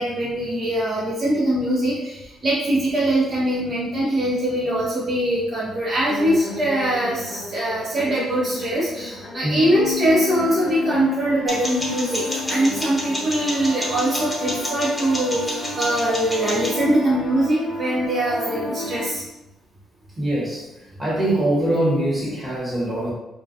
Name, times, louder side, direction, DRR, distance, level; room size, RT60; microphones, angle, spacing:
voice 1, 0.0-19.2, right 1 dB, 40° right, -8 dB, 0.6 m, -22 dB
sound 1, 6.1-19.1, left 2 dB, 75° left, 0.4 m, -32 dB
sound 2, 11.5-16.8, equal, 10° left, 0.8 m, -30 dB
voice 2, 20.2-20.6 21.0-23.1, right 1 dB, 20° right, -5 dB, 1.1 m, -22 dB
2.2 x 2.2 x 2.7 m, 0.90 s
cardioid pair, 90°, 0 cm